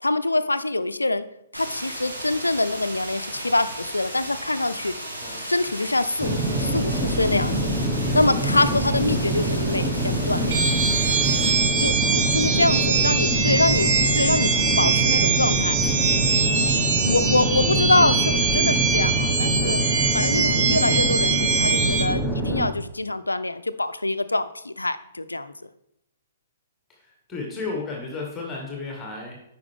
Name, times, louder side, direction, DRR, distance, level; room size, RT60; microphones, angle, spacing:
voice 1, 0.0-1.2 1.5-4.9 5.4-7.6 8.1-10.6 11.8-15.8 17.0-19.8 20.1-25.5, left 2 dB, 85° left, 13 dB, 0.4 m, -25 dB
sound 1, 1.5-11.5, right 1 dB, 90° right, 2.5 m, -35 dB
sound 2, 6.2-22.7, right 1 dB, 5° right, 1.3 m, -25 dB
sound 3, 10.5-22.0, right 5 dB, 40° right, 1.3 m, -23 dB
voice 2, 11.9-13.3 15.8-16.0 18.0-18.4 26.9-29.4, left 3 dB, 15° left, -1 dB, 1.7 m, -34 dB
9.4 x 5.6 x 3.5 m, 0.80 s
figure-of-eight pair, 120°, 0 cm